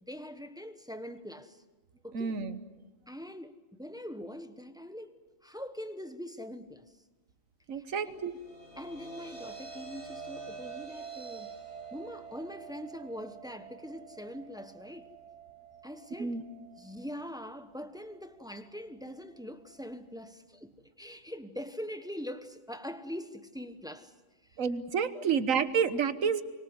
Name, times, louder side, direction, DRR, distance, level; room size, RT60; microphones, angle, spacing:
voice 1, 0.0-1.6 2.0-2.4 3.1-5.1 5.4-6.9 7.7-8.2 8.8-11.5 11.9-15.1 15.8-16.4 16.8-24.1 24.4-24.6 25.1-25.4, equal, 5° right, 1.0 m, -43 dB
voice 2, 2.1-2.6 7.7-8.4 16.2-16.4 24.6-26.4, right 6 dB, 90° right, 1.6 m, -29 dB
sound 1, 8.0-20.3, right 5 dB, 40° left, 4.8 m, -48 dB
24.5 x 24.5 x 8.0 m
omnidirectional pair, 1.3 m